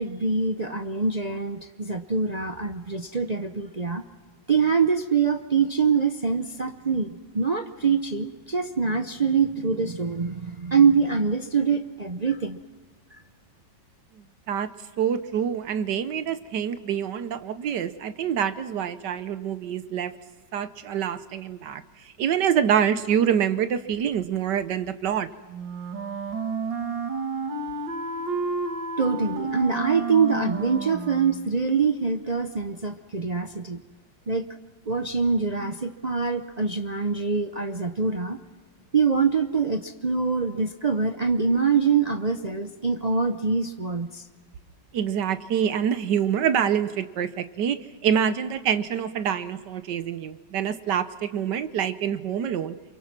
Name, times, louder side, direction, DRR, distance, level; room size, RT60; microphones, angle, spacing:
voice 1, 0.0-4.0 4.5-7.1 7.3-12.6 13.1-13.2 29.0-33.8 34.3-34.5 34.9-38.4 38.9-44.2, right 5 dB, 55° right, 6 dB, 0.4 m, -24 dB
voice 2, 15.0-20.1 20.5-21.8 22.2-25.3 44.9-47.8 48.0-52.7, right 8 dB, 70° right, 12 dB, 1.5 m, -26 dB
Wind instrument woodwind instrument, 25.5-31.5, right 4 dB, 90° right, 2.6 m, -31 dB
28.5 x 23.5 x 6.0 m, 1.5 s
omnidirectional pair, 2.0 m